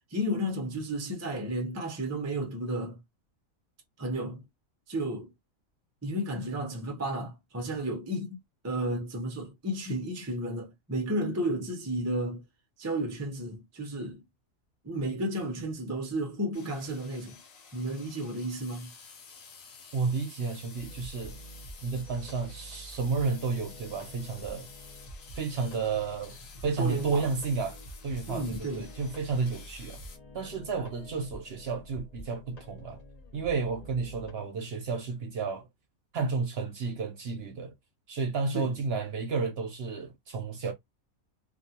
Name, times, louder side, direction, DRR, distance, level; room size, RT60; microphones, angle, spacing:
voice 1, 0.1-3.0 4.0-4.4 4.9-5.3 6.0-8.4 8.6-12.4 12.8-14.2 14.8-17.4 17.7-18.9 26.8-27.3 28.3-28.9 38.5-38.8, right 1 dB, 20° right, 0.4 m, -32 dB
sound 1, 16.5-30.2, left 5 dB, 70° left, 1.1 m, -51 dB
voice 2, 19.9-21.4 21.8-24.7 25.4-26.4 26.6-27.8 28.0-30.0 30.3-33.0 33.3-35.6 36.1-37.7 38.1-40.7, right 4 dB, 55° right, 0.8 m, -32 dB
sound 2, 20.8-34.3, equal, 35° left, 0.9 m, -48 dB
2.5 x 2.3 x 2.7 m
omnidirectional pair, 1.5 m